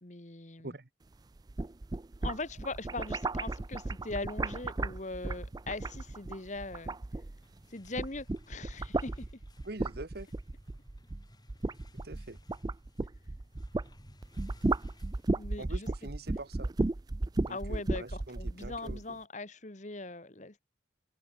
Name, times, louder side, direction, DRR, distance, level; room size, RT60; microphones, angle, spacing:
voice 1, 0.0-0.7 2.2-7.0 7.7-9.3 15.3-15.9 17.5-20.6, left 2 dB, 40° left, 1.6 m, -41 dB
sound 1, 1.4-7.6 7.9-13.9 14.2-19.0, right 2 dB, 20° right, 0.4 m, -34 dB
sound 2, 7.2-15.8, left 1 dB, 20° left, 7.8 m, -60 dB
voice 2, 9.6-10.3 12.0-12.4 15.6-16.7 17.4-19.0, right 2 dB, 55° right, 1.3 m, -44 dB
head